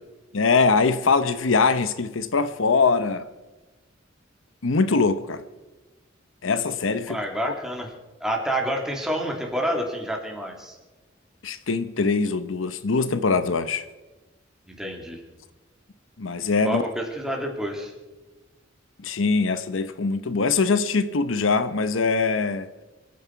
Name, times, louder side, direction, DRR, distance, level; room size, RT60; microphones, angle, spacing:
voice 1, 0.3-3.3 4.6-5.4 6.4-7.2 7.5-7.6 11.4-13.8 16.2-16.9 19.0-22.7, left 4 dB, 85° left, 0.8 m, -22 dB
voice 2, 7.1-7.9 8.2-10.8 14.7-15.2 16.6-17.9, equal, 5° right, 2.6 m, -28 dB
27.0 x 9.7 x 4.6 m
head